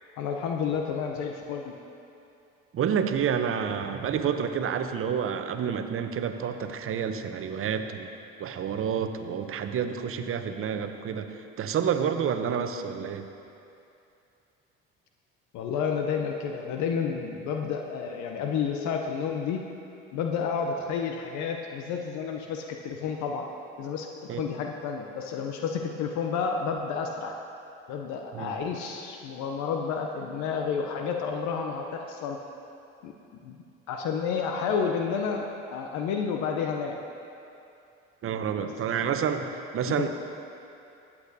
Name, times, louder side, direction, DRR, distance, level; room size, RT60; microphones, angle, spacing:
voice 1, 0.2-1.7 15.5-19.6 20.1-23.5 23.8-27.4 27.9-32.4 33.0-33.1 33.4-33.6 33.9-37.0 38.6-38.7 39.0-39.3 40.0-40.1, left 6 dB, 70° left, 3 dB, 0.7 m, -30 dB
voice 2, 2.7-8.1 8.4-11.3 11.6-13.3 24.3-24.4 28.3-28.5 38.2-40.1, right 7 dB, 45° right, 8 dB, 0.8 m, -29 dB
14.5 x 8.4 x 2.7 m, 2.7 s
hypercardioid pair, 65°, 30 cm